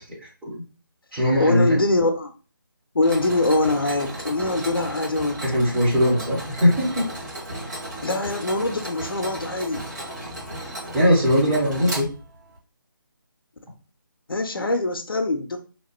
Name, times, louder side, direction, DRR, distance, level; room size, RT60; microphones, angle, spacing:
voice 1, 0.2-0.5 1.1-1.8 5.4-7.1 10.9-12.1, equal, 5° right, -7 dB, 0.4 m, -20 dB
voice 2, 1.4-2.3 2.9-5.4 8.0-9.9 14.3-15.6, left 2 dB, 75° left, 5 dB, 0.5 m, -23 dB
Mechanisms, 3.0-12.6, right 1 dB, 50° right, 1.4 m, -35 dB
2.9 x 2.1 x 2.9 m, 0.35 s
figure-of-eight pair, 150°, 12 cm